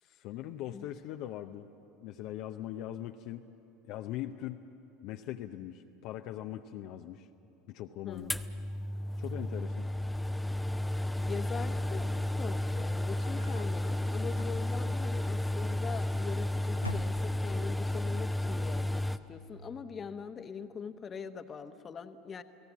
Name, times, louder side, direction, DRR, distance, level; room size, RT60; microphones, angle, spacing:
voice 1, 0.0-1.7 2.0-3.5 3.8-4.6 5.0-7.3 7.7-8.4 9.2-9.9, left 12 dB, 55° left, 5 dB, 0.7 m, -41 dB
voice 2, 8.0-8.4 11.3-22.4, left 6 dB, 30° left, 10 dB, 1.1 m, -42 dB
sound 1, 8.3-19.2, left 1 dB, 5° left, 0.8 m, -32 dB
sound 2, 12.7-13.8 14.3-15.0 15.9-16.4 16.7-17.7, left 1 dB, 90° left, 0.6 m, -46 dB
30.0 x 18.0 x 7.4 m, 2.7 s
figure-of-eight pair, 75°, 0 cm